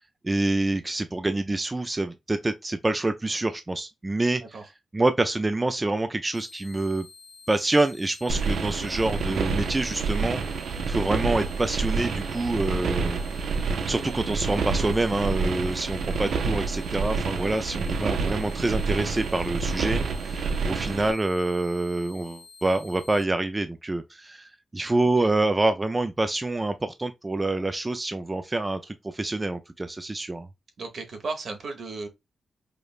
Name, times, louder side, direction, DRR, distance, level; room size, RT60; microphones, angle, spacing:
voice 1, 0.2-4.4 4.9-7.1 7.5-10.4 10.9-13.6 13.9-30.5, right 2 dB, 20° right, 0.3 m, -27 dB
sound 1, 6.3-23.3, left 4 dB, 15° left, 0.6 m, -50 dB
sound 2, 8.3-21.1, right 4 dB, 80° right, 0.5 m, -28 dB
voice 2, 30.8-32.1, right 3 dB, 65° right, 1.0 m, -35 dB
4.9 x 2.1 x 2.3 m
cardioid pair, 80°, 0 cm